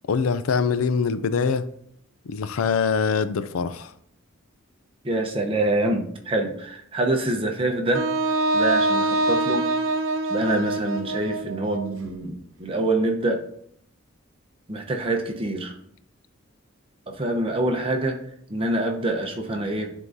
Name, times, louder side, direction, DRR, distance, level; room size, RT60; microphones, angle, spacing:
voice 1, 0.1-1.7 2.2-3.9, left 5 dB, 85° left, 13 dB, 0.4 m, -23 dB
voice 2, 5.0-8.1 8.5-9.6 10.3-13.4 14.7-15.7 17.1-18.2 18.5-19.9, right 2 dB, 25° right, 2 dB, 0.8 m, -25 dB
Wind instrument woodwind instrument, 7.9-12.0, right 2 dB, 65° right, 0.5 m, -24 dB
11.0 x 3.7 x 2.7 m, 0.67 s
head